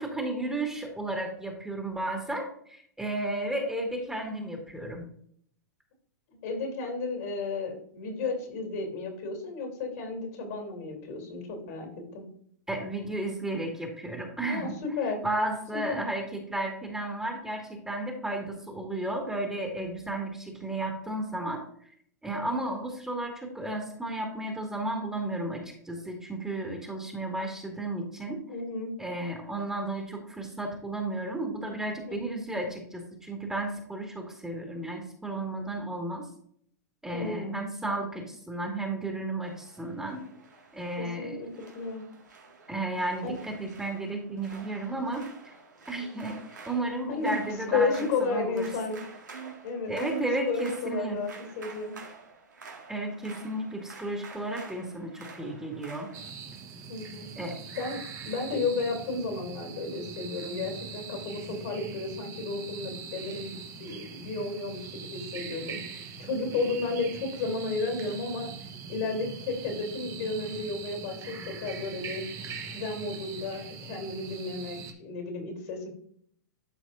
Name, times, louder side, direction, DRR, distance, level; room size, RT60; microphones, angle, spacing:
voice 1, 0.0-5.0 12.7-14.7 15.2-21.9 22.2-25.6 25.9-28.4 29.0-36.3 37.0-40.2 40.7-41.4 42.7-45.3 45.9-47.9 48.2-48.7 49.9-51.2 52.9-56.1 57.4-57.6, right 2 dB, 5° right, 1 dB, 2.0 m, -33 dB
voice 2, 6.4-12.3 14.4-15.2 15.7-16.0 28.5-28.9 32.1-32.3 37.1-37.6 41.0-41.5 41.7-42.1 43.2-43.4 47.1-47.3 47.7-49.0 49.3-51.3 51.5-52.0 56.9-57.3 57.7-68.5 68.9-72.3 72.7-75.9, left 3 dB, 60° left, 3 dB, 3.1 m, -33 dB
sound 1, 39.4-56.3, right 4 dB, 85° right, 2.0 m, -49 dB
sound 2, 56.1-74.9, right 6 dB, 30° right, 1.2 m, -42 dB
12.5 x 4.6 x 2.6 m, 0.64 s
hypercardioid pair, 110°, 10 cm